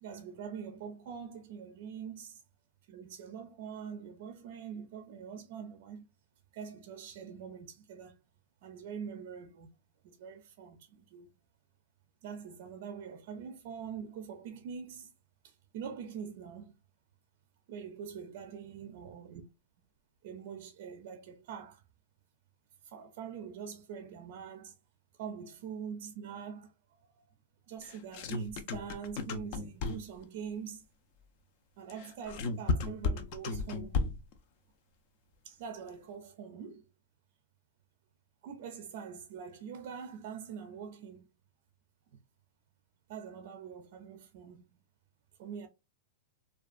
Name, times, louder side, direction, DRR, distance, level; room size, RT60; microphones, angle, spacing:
voice 1, 0.0-2.4 2.9-6.1 6.5-8.2 8.6-9.7 10.0-11.3 12.2-15.1 15.4-16.7 17.7-19.4 20.2-21.8 22.8-24.8 25.2-26.7 27.0-27.2 27.7-30.9 31.8-34.0 35.4-36.8 38.4-41.3 42.1-42.2 43.1-44.6 45.4-45.7, right 7 dB, 55° right, 0.4 m, -44 dB
sound 1, 27.8-30.2 31.9-34.4, left 3 dB, 50° left, 0.4 m, -34 dB
2.4 x 2.2 x 2.3 m
hypercardioid pair, 130°, 0 cm